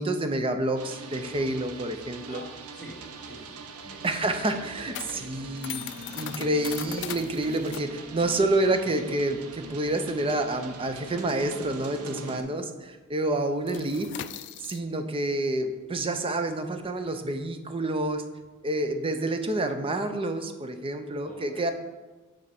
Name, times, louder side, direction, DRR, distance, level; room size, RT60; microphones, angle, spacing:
voice 1, 0.0-2.4 4.0-14.2 14.6-18.2 18.6-21.7, right 2 dB, 25° right, 8 dB, 0.5 m, -28 dB
sound 1, 0.8-12.4, right 3 dB, 80° right, 0.7 m, -43 dB
voice 2, 2.3-4.1 4.3-4.6 4.8-5.4 12.2-12.5 21.2-21.7, equal, 5° left, -8 dB, 2.0 m, -46 dB
sound 2, 3.4-12.4 12.6-12.9 13.2-18.9, left 11 dB, 55° left, 0.3 m, -41 dB
8.3 x 4.4 x 4.9 m, 1.2 s
head